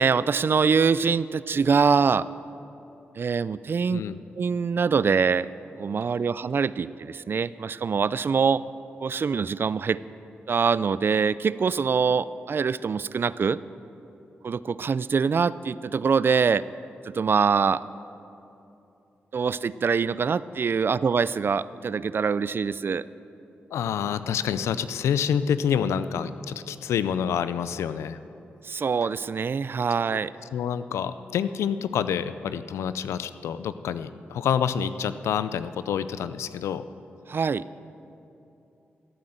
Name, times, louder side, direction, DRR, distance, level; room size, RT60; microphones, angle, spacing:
voice 1, 0.0-2.3 3.2-4.0 4.4-5.5 5.8-8.6 9.0-10.0 10.5-13.6 14.4-16.6 17.0-17.8 19.3-23.1 28.6-30.3 37.3-37.7, right 5 dB, 50° right, 18 dB, 0.4 m, -24 dB
voice 2, 23.7-28.2 30.5-36.8, left 8 dB, 85° left, 13 dB, 0.4 m, -27 dB
13.5 x 8.8 x 7.8 m, 2.8 s
supercardioid pair, 50°, 5 cm